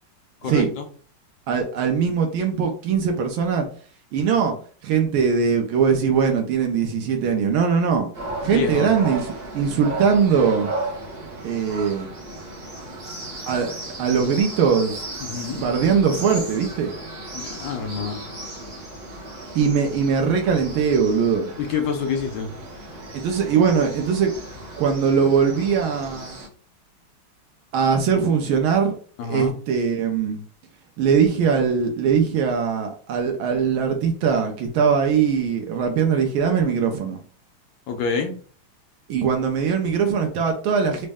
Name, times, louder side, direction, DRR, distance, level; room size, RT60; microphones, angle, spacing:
voice 1, 0.4-0.9 8.5-8.9 15.2-15.6 17.3-18.2 21.6-22.5 29.2-29.6 37.9-38.3, left 5 dB, 70° left, 4 dB, 1.3 m, -27 dB
voice 2, 1.5-3.7 4.1-4.5 4.8-8.1 8.4-10.7 11.4-12.1 13.5-15.1 15.5-16.9 19.5-21.5 23.1-24.3 24.8-26.4 27.7-28.9 29.3-30.4 31.0-37.2 39.1-41.1, right 6 dB, 80° right, 3 dB, 1.4 m, -21 dB
sound 1, 8.1-26.5, right 2 dB, 40° right, 0.8 m, -35 dB
4.1 x 2.1 x 3.4 m, 0.43 s
omnidirectional pair, 2.3 m